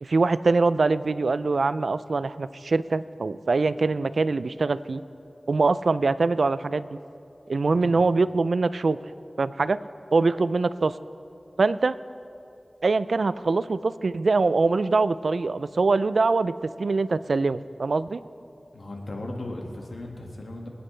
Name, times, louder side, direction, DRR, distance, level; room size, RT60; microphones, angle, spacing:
voice 1, 0.0-5.0 5.5-7.0 7.5-9.0 9.4-9.8 10.1-10.9 11.6-12.0 12.8-18.2, right 3 dB, 85° right, 15 dB, 0.3 m, -23 dB
voice 2, 18.7-20.7, left 1 dB, 80° left, 0 dB, 1.7 m, -36 dB
25.5 x 9.5 x 3.3 m, 2.6 s
wide cardioid pair, 55°, 0 cm